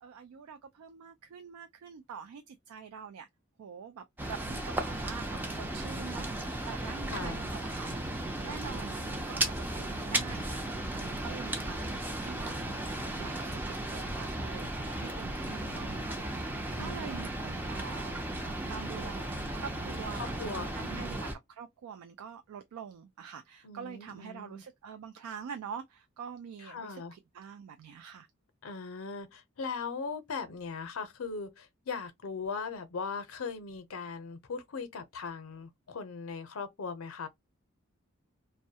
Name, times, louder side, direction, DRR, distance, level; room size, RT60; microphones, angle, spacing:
voice 1, 0.0-3.3 3.6-7.9 8.4-12.6 13.2-16.5 16.8-19.3 19.5-28.3, right 7 dB, 90° right, 0.3 m, -45 dB
sound 1, 4.2-21.3, right 1 dB, 10° right, 0.3 m, -35 dB
voice 2, 15.5-16.1 16.8-17.3 20.2-21.2 23.6-24.6 26.7-27.1 28.6-37.3, left 5 dB, 75° left, 0.6 m, -39 dB
2.2 x 2.1 x 2.6 m
head